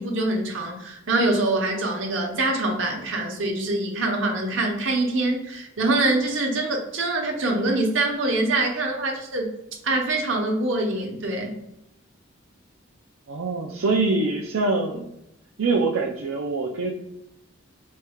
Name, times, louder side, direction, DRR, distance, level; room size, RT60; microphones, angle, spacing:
voice 1, 0.0-9.5 9.8-11.6, right 2 dB, 75° right, 1 dB, 0.9 m, -24 dB
voice 2, 13.3-15.1 15.6-16.9, right 3 dB, 90° right, -1 dB, 0.5 m, -24 dB
4.2 x 3.5 x 2.2 m, 0.84 s
head